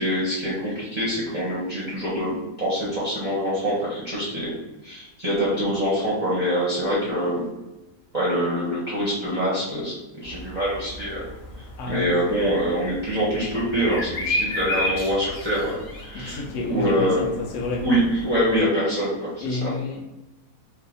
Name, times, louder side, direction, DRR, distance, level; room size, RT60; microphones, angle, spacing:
voice 1, 0.0-4.5 4.8-7.5 8.1-11.2 11.9-16.4 16.7-17.2 17.8-19.7, equal, 30° right, 0.9 m, -25 dB
sound 1, 10.2-18.6, left 1 dB, 55° left, 0.8 m, -33 dB
voice 2, 11.8-12.1 16.1-17.9 19.4-20.0, left 3 dB, 80° left, 1.1 m, -29 dB
3.1 x 2.7 x 3.9 m
omnidirectional pair, 1.6 m